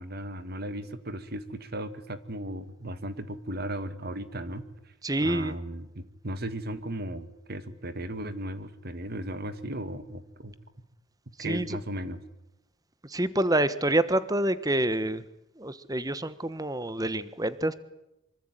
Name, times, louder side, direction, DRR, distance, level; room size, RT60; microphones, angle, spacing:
voice 1, 0.0-4.9 5.2-10.5 11.4-12.2, right 1 dB, 45° right, 12 dB, 1.7 m, -36 dB
voice 2, 5.0-5.5 11.4-11.7 13.0-15.2 15.6-17.7, right 1 dB, 15° right, 14 dB, 1.3 m, -27 dB
25.0 x 24.5 x 9.3 m, 0.88 s
head